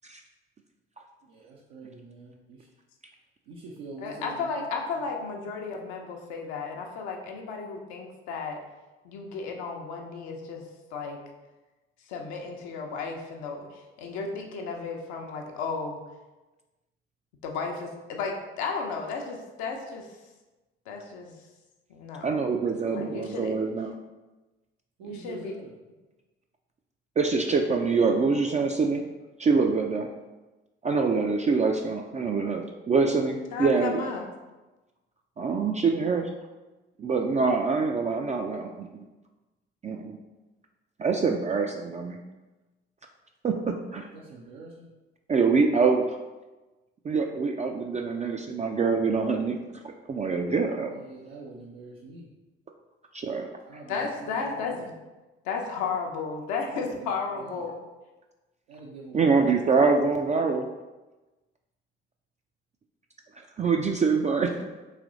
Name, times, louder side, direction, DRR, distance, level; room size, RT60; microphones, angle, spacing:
voice 1, 1.2-2.7 3.5-4.6 22.3-23.2 25.0-25.7 29.8-29.9 44.1-44.9 50.8-52.3 53.6-54.8 56.7-57.7 58.7-59.9, right 3 dB, 75° right, -3 dB, 0.6 m, -45 dB
voice 2, 4.0-8.6 9.0-10.6 10.9-11.2 12.1-16.0 17.4-20.1 20.9-21.4 21.9-22.3 22.9-23.5 25.0-25.5 33.5-34.3 53.9-55.0 55.4-57.7, left 4 dB, 70° left, 1 dB, 0.7 m, -34 dB
voice 3, 22.2-23.9 27.2-29.0 29.4-30.1 30.8-34.0 35.4-36.3 37.0-38.9 39.8-40.2 41.0-42.2 43.4-44.1 45.3-46.2 47.0-49.6 49.8-50.9 53.1-53.5 59.1-60.6 63.6-64.7, right 4 dB, 25° right, 2 dB, 0.3 m, -25 dB
3.2 x 3.0 x 3.8 m, 1.1 s
hypercardioid pair, 50°, 30 cm